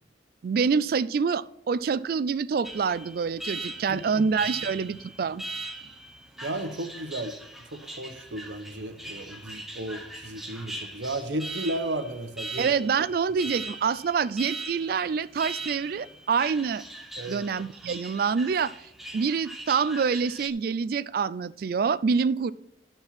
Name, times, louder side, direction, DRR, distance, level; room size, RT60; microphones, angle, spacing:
voice 1, 0.4-5.4 12.6-16.8 17.3-18.8 19.1-22.5, right 5 dB, 50° right, 18 dB, 0.3 m, -26 dB
Alarm, 2.6-20.5, right 2 dB, ahead, 0.7 m, -40 dB
voice 2, 3.9-4.2 5.8-5.9 6.4-7.3 7.7-12.7 17.2-17.4, right 1 dB, 70° right, 8 dB, 1.0 m, -34 dB
11.0 x 4.4 x 5.8 m, 0.76 s
head